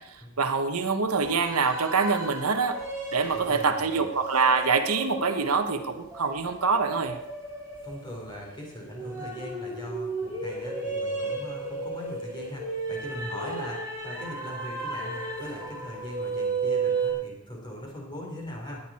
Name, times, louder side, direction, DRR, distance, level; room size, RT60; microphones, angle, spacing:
voice 1, 0.4-2.8 3.1-7.2, right 4 dB, 90° right, 6 dB, 1.3 m, -25 dB
sound 1, 1.2-17.1, right 3 dB, 10° right, 5.1 m, -34 dB
voice 2, 3.3-4.1 7.8-18.8, left 1 dB, 20° left, -1 dB, 3.9 m, -40 dB
18.5 x 10.5 x 4.4 m, 0.85 s
head